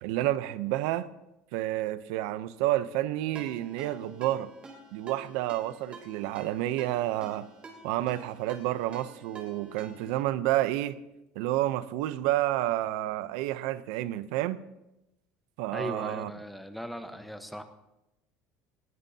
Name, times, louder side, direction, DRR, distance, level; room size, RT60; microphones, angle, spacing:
voice 1, 0.0-1.1 1.5-4.5 4.9-7.5 7.8-11.0 11.4-14.6 15.6-16.3, right 14 dB, 80° right, 14 dB, 0.7 m, -30 dB
Ringtone, 3.4-10.2, right 3 dB, 30° right, 3.0 m, -49 dB
voice 2, 15.7-17.6, equal, ahead, 7 dB, 1.1 m, -38 dB
19.0 x 16.0 x 2.8 m, 0.93 s
cardioid pair, 135°, 4 cm